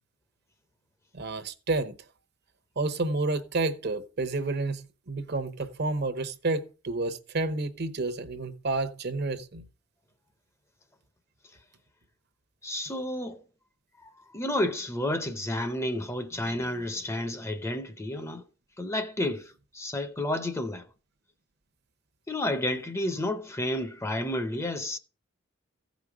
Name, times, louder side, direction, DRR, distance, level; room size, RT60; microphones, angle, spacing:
voice 1, 1.1-1.9 2.8-9.6, right 3 dB, 55° right, 0.9 m, -30 dB
voice 2, 12.6-13.4 14.0-18.4 18.8-20.8 22.3-25.0, left 1 dB, 15° left, 0.7 m, -31 dB
15.0 x 5.2 x 4.9 m
head